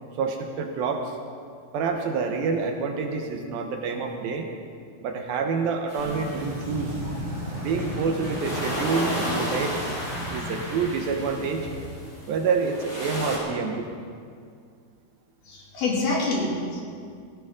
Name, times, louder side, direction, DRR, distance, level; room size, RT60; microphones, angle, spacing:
voice 1, 0.2-1.1 1.7-4.5 5.0-7.0 7.6-9.8 10.3-11.7 12.3-13.9, right 5 dB, 70° right, 3 dB, 2.7 m, -27 dB
sound 1, 5.9-13.4, equal, 20° left, 3.2 m, -34 dB
sound 2, 6.0-11.9, equal, 35° right, 4.7 m, -35 dB
voice 2, 15.5-16.8, left 3 dB, 65° left, -3 dB, 4.2 m, -26 dB
18.0 x 16.5 x 3.7 m, 2.2 s
omnidirectional pair, 4.6 m